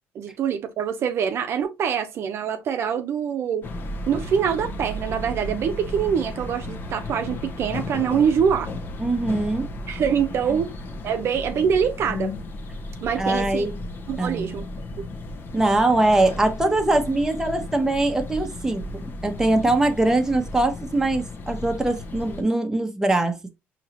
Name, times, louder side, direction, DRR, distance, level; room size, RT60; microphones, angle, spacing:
voice 1, 0.1-3.7 4.1-8.7 9.9-10.7 11.0-12.3 13.0-13.7 14.1-14.7 15.0-15.1, right 7 dB, 60° right, 0.6 m, -24 dB
sound 1, 3.6-22.4, left 1 dB, 45° left, 0.9 m, -34 dB
voice 2, 9.0-9.7 13.2-13.7 14.2-14.5 15.5-23.5, right 2 dB, 10° right, 0.9 m, -22 dB
4.6 x 2.9 x 2.9 m
cardioid pair, 95°, 5 cm